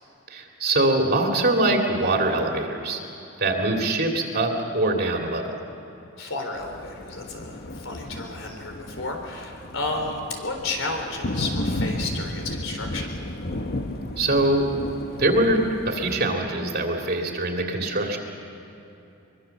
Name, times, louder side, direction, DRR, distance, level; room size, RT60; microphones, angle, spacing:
voice 1, 0.3-3.0 3.4-5.6 14.2-14.7 15.2-18.2, right 2 dB, 50° right, 1 dB, 2.7 m, -23 dB
voice 2, 6.2-13.2, left 3 dB, 75° left, 3 dB, 3.9 m, -32 dB
Thunder, 6.5-16.2, left 1 dB, 55° left, 1.2 m, -33 dB
23.5 x 22.5 x 7.2 m, 2.9 s
head